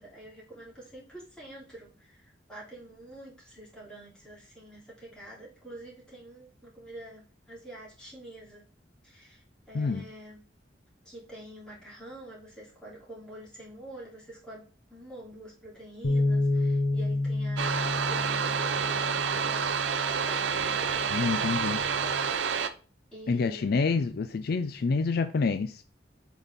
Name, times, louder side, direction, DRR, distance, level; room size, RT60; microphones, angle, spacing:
voice 1, 0.0-8.6 9.0-10.4 11.0-14.6 14.9-22.1 23.1-23.7, right 1 dB, 5° left, 3.1 m, -47 dB
sound 1, 16.0-22.3, left 2 dB, 90° left, 1.0 m, -31 dB
sound 2, 17.6-22.7, right 6 dB, 90° right, 0.6 m, -29 dB
voice 2, 21.1-21.8 23.3-25.8, left 4 dB, 55° left, 0.4 m, -27 dB
8.0 x 4.1 x 3.5 m
head